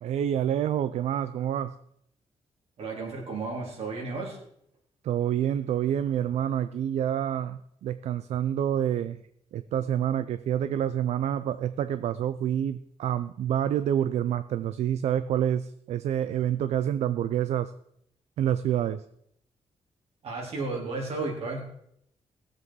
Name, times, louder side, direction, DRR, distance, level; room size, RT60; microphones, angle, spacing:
voice 1, 0.0-1.8 5.0-9.2 9.5-17.7 18.4-19.0, right 10 dB, 85° right, 13 dB, 0.5 m, -27 dB
voice 2, 2.8-4.4 20.2-21.6, right 3 dB, 65° right, -1 dB, 3.5 m, -33 dB
17.0 x 7.6 x 4.7 m, 0.72 s
cardioid pair, 120°, 11 cm